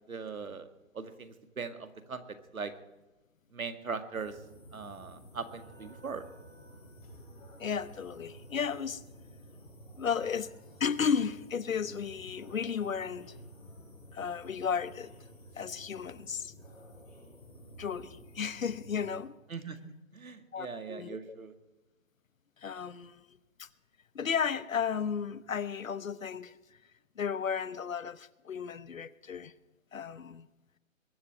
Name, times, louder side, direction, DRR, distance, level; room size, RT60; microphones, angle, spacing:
voice 1, 0.1-0.7 0.9-2.7 3.5-4.4 4.7-6.3 19.5-21.5, right 5 dB, 90° right, 2.0 m, -40 dB
sound 1, 4.1-19.2, equal, 10° left, 5.0 m, -52 dB
voice 2, 7.6-9.0 10.0-10.5 10.8-13.3 14.1-15.1 15.6-16.5 17.8-19.3 20.5-21.2 22.6-23.3 23.6-23.7 24.1-26.6 27.2-29.5 29.9-30.5, left 6 dB, 75° left, 1.0 m, -34 dB
22.0 x 7.8 x 8.5 m
hypercardioid pair, 170°, 40 cm